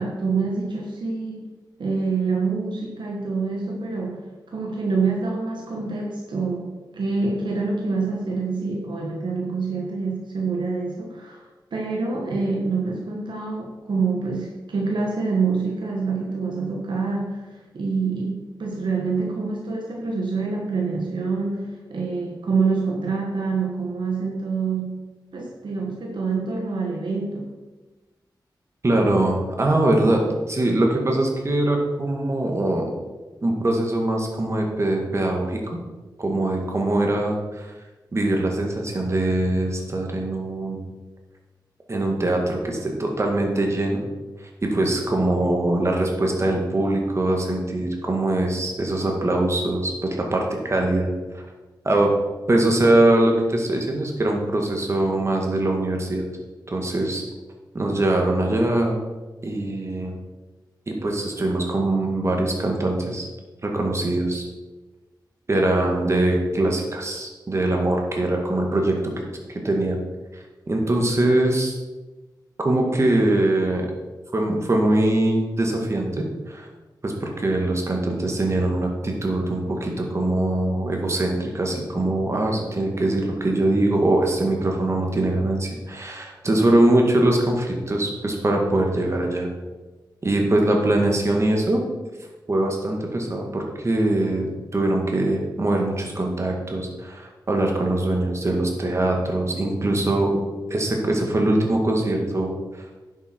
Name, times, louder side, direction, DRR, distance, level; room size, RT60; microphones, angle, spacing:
voice 1, 0.0-1.5 1.8-11.4 11.7-25.0 25.3-27.5, right 4 dB, 85° right, -1 dB, 1.5 m, -26 dB
voice 2, 28.8-32.9 33.4-35.6 36.2-37.7 38.1-40.8 41.9-44.0 44.6-51.4 51.8-52.1 52.5-56.3 56.7-57.2 57.7-59.0 59.4-60.1 60.9-63.3 63.6-64.5 65.5-69.2 69.5-70.0 70.3-71.8 72.6-73.9 74.3-76.7 77.0-89.5 90.2-91.8 92.5-100.4 100.7-102.6, right 1 dB, 35° right, 1 dB, 1.9 m, -22 dB
10.5 x 8.3 x 4.6 m, 1.2 s
wide cardioid pair, 125°, 8 cm